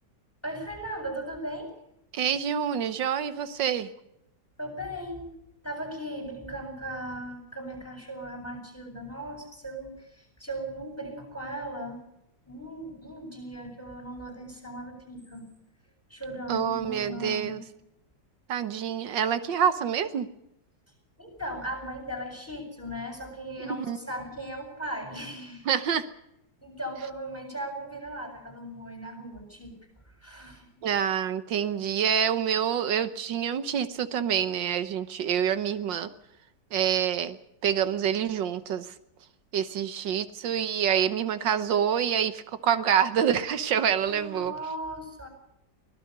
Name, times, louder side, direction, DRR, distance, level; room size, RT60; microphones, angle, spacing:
voice 1, 0.4-1.7 4.6-5.3 5.6-12.0 12.5-15.4 16.1-17.6 21.2-25.7 26.6-29.7 30.1-30.7 44.1-45.3, right 1 dB, 5° left, 3 dB, 7.4 m, -37 dB
voice 2, 2.1-3.9 16.5-17.6 18.5-20.3 23.7-24.0 25.7-26.1 30.8-36.1 36.7-37.4 37.6-38.9 39.5-44.5, right 8 dB, 85° right, 12 dB, 1.7 m, -27 dB
24.5 x 18.0 x 6.7 m, 0.82 s
omnidirectional pair, 1.9 m